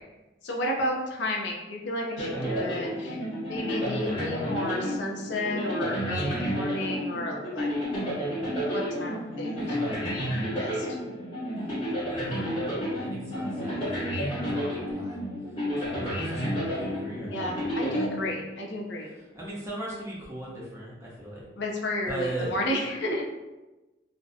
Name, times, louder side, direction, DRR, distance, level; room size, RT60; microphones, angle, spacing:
voice 1, 0.4-3.2 3.5-7.7 8.6-9.8 10.4-10.9 17.3-19.1 21.6-23.2, left 1 dB, 70° left, -1 dB, 0.4 m, -32 dB
sound 1, 2.2-18.7, equal, 30° left, 1.1 m, -31 dB
voice 2, 9.6-10.4 12.1-15.3 15.8-17.6 19.0-21.5 22.1-22.6, right 1 dB, 15° right, -6 dB, 0.6 m, -38 dB
2.5 x 2.1 x 2.5 m, 1.1 s
head